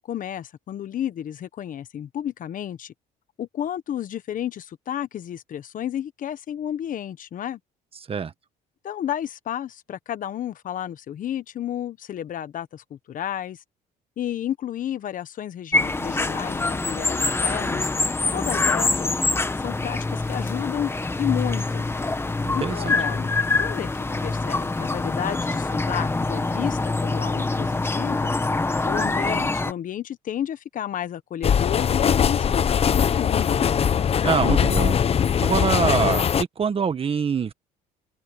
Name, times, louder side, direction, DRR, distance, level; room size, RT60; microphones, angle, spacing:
voice 1, 0.0-2.9 3.4-7.6 8.8-13.6 14.2-17.9 18.3-19.1 19.6-20.9 21.2-21.8 22.5-23.9 24.2-28.3 28.8-33.6, left 10 dB, 50° left, 1.2 m, -31 dB
voice 2, 7.9-8.3 22.4-22.9 34.2-37.5, right 6 dB, 35° right, 1.5 m, -25 dB
sound 1, 15.7-29.7, left 3 dB, 15° left, 1.5 m, -25 dB
sound 2, 31.4-36.4, left 8 dB, 35° left, 0.8 m, -21 dB
cardioid pair, 110°, 17 cm